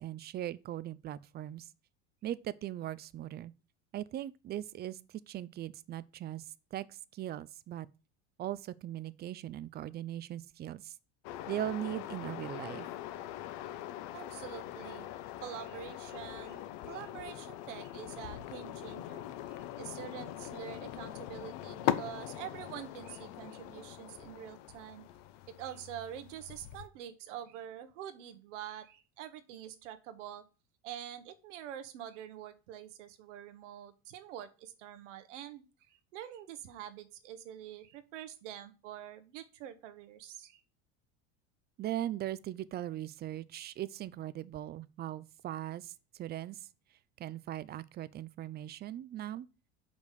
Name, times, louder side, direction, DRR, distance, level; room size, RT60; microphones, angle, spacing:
voice 1, 0.0-1.7 2.2-3.5 3.9-5.0 5.3-7.9 8.4-10.9 11.5-12.9 41.8-45.9 46.2-46.6 47.2-49.5, right 12 dB, 30° right, 0.4 m, -39 dB
sound 1, 11.2-26.9, left 12 dB, 70° left, 0.8 m, -41 dB
voice 2, 14.1-15.1 15.4-25.0 25.5-30.4 30.8-40.6, right 10 dB, 90° right, 1.1 m, -46 dB
5.2 x 5.2 x 6.5 m
supercardioid pair, 115°, 35 cm